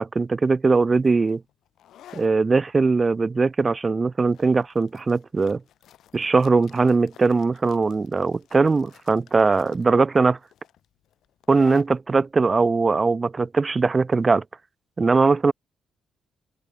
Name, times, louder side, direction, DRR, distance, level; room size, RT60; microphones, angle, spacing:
voice 1, 0.0-1.4 2.1-5.6 6.1-10.4 11.5-14.4 15.0-15.5, right 4 dB, 30° right, 0.6 m, -20 dB
sound 1, 0.9-14.3, left 11 dB, 75° left, 7.6 m, -52 dB
open air
cardioid pair, 85°, 0 cm